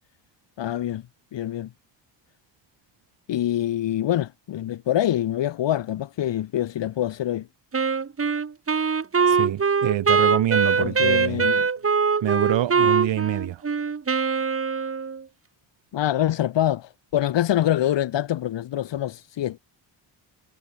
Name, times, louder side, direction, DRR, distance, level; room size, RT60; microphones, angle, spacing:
voice 1, 0.6-1.0 1.3-1.7 3.3-7.5 10.8-11.7 15.9-19.6, left 12 dB, 70° left, 3.7 m, -25 dB
Wind instrument woodwind instrument, 7.7-15.2, right 5 dB, 30° right, 3.9 m, -22 dB
voice 2, 9.3-11.4 12.2-13.6, right 12 dB, 75° right, 7.0 m, -26 dB
cardioid pair, 130°, 44 cm